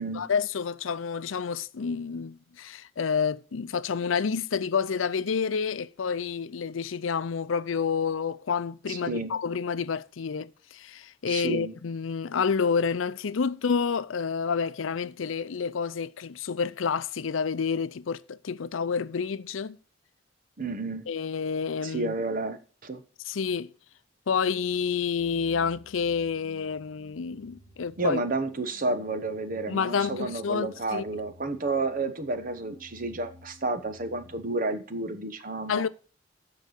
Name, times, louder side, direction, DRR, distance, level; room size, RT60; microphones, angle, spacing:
voice 1, 0.1-19.8 21.1-22.2 23.3-23.7 24.3-28.2 29.7-31.1 35.7-35.9, left 6 dB, 90° left, 0.5 m, -29 dB
voice 2, 8.9-9.3 11.3-11.7 20.6-21.1 21.8-23.0 28.0-35.9, right 3 dB, 45° right, 1.0 m, -31 dB
sound 1, 25.1-34.5, left 2 dB, 15° right, 3.5 m, -54 dB
14.0 x 4.7 x 6.4 m
head